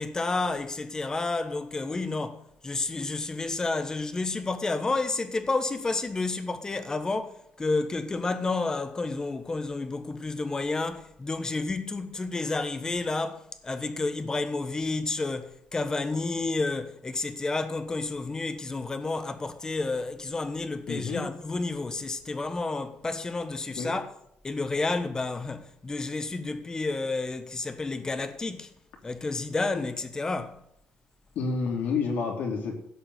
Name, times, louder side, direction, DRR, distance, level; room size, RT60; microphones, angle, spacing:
voice 1, 0.0-24.1 24.4-28.7 29.0-30.6, left 3 dB, 20° left, 1.2 m, -30 dB
voice 2, 20.9-21.2 23.8-24.0 31.3-32.9, left 4 dB, 70° left, 3.2 m, -29 dB
16.0 x 5.4 x 8.0 m
cardioid pair, 125°, 3 cm